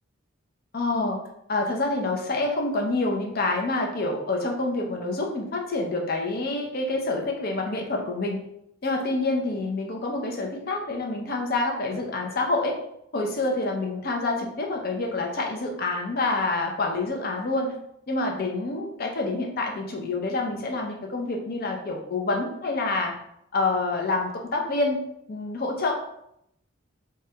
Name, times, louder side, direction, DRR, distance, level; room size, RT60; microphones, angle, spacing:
voice 1, 0.7-1.2 1.5-8.4 8.8-12.8 13.1-17.8 18.1-23.1 23.5-25.0 25.3-25.9, left 2 dB, 45° left, 1 dB, 0.5 m, -27 dB
3.2 x 2.3 x 2.7 m, 0.77 s
head